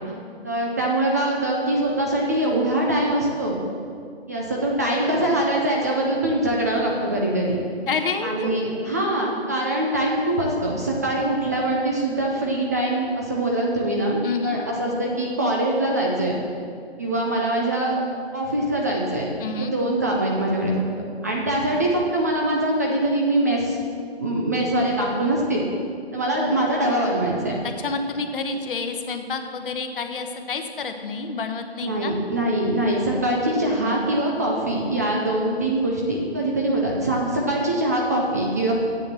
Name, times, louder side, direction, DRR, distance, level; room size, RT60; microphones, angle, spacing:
voice 1, 0.4-3.6 4.3-7.6 8.2-16.4 17.0-18.0 18.3-19.3 19.6-20.8 21.2-23.8 24.2-25.6 26.1-27.5 31.8-38.8, right 1 dB, 15° right, -2 dB, 0.5 m, -23 dB
voice 2, 7.9-8.5 14.2-14.6 19.4-19.7 27.6-32.2, left 4 dB, 55° left, 6 dB, 1.0 m, -28 dB
7.9 x 7.0 x 7.4 m, 2.4 s
hypercardioid pair, 155°, 32 cm